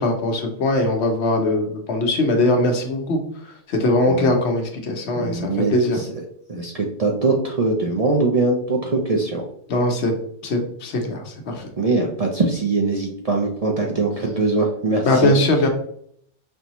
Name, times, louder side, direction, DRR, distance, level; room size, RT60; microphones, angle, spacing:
voice 1, 0.0-3.2 3.7-6.0 9.7-10.1 10.4-11.7 15.0-15.7, left 2 dB, 65° left, 3 dB, 1.0 m, -20 dB
voice 2, 5.1-6.1 6.5-9.4 11.8-15.3, right 3 dB, 40° right, -1 dB, 0.5 m, -22 dB
5.3 x 2.7 x 3.0 m, 0.66 s
omnidirectional pair, 1.2 m